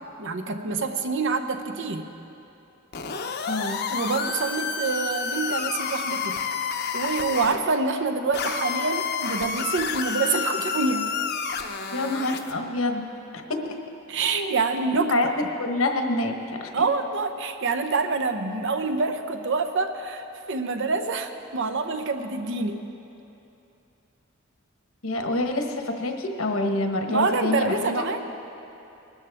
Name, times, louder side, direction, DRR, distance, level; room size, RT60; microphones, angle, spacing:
voice 1, 0.2-2.1 3.9-6.4 6.9-11.1 14.1-15.1 16.7-22.9 27.1-28.2, right 4 dB, 65° right, 8 dB, 0.8 m, -26 dB
sound 1, 2.9-7.6 8.3-12.5, left 6 dB, 50° left, 0.7 m, -29 dB
voice 2, 3.5-3.8 11.9-13.1 13.5-13.8 14.3-14.6 15.1-16.9 25.0-27.7, left 2 dB, 75° left, 4 dB, 1.2 m, -26 dB
21.0 x 12.5 x 3.5 m, 2.8 s
head